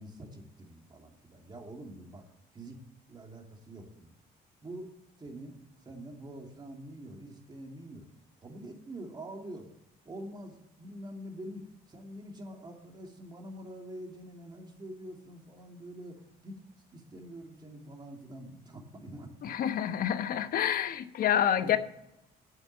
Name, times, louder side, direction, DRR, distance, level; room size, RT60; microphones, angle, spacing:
voice 1, 0.0-2.2 2.5-2.8 3.1-4.1 4.6-4.9 5.2-8.1 8.4-9.7 10.0-16.6 16.9-19.3 21.6-21.8, right 1 dB, 25° right, 2 dB, 2.6 m, -45 dB
voice 2, 19.4-21.8, left 10 dB, 60° left, 10 dB, 1.0 m, -28 dB
8.7 x 7.9 x 8.7 m, 0.83 s
cardioid pair, 110°, 17 cm